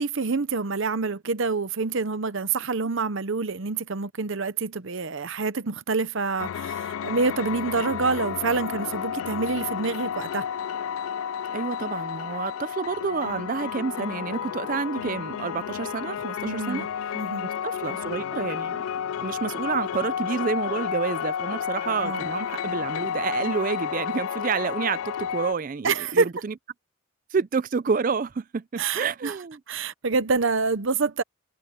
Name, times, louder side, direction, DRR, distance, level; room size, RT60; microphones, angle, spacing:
voice 1, 0.0-10.4 16.4-16.9 17.1-17.4 22.0-22.3 25.8-26.3 28.8-29.3 29.7-31.2, right 4 dB, 60° right, 0.8 m, -27 dB
sound 1, 6.4-25.5, left 8 dB, 70° left, 0.3 m, -31 dB
voice 2, 11.5-16.9 17.4-18.8 19.2-26.5 27.3-29.6, right 5 dB, 40° right, 0.4 m, -29 dB
head